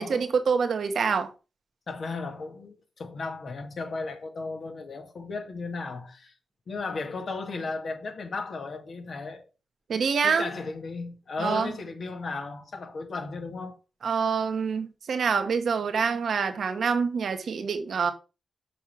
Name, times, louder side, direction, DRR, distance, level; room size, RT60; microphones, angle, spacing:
voice 1, 0.0-1.3 9.9-10.5 11.4-11.7 14.0-18.1, right 5 dB, 75° right, 1.3 m, -26 dB
voice 2, 1.9-6.3 6.7-9.4 10.2-13.8, left 3 dB, 70° left, 2.0 m, -35 dB
6.6 x 5.7 x 5.8 m
supercardioid pair, 40°, 0 cm